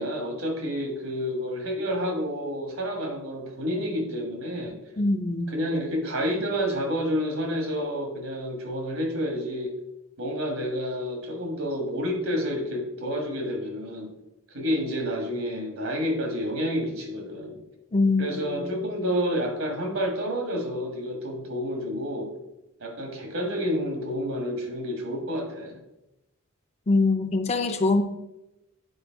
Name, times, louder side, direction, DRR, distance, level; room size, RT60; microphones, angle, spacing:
voice 1, 0.0-4.8 5.5-9.7 10.2-14.1 14.5-17.6 18.2-22.3 22.8-25.8, equal, 70° right, 3 dB, 1.6 m, -29 dB
voice 2, 5.0-5.5 17.9-18.7 26.9-28.0, left 3 dB, 30° left, 7 dB, 0.5 m, -23 dB
8.7 x 4.3 x 4.6 m, 0.93 s
head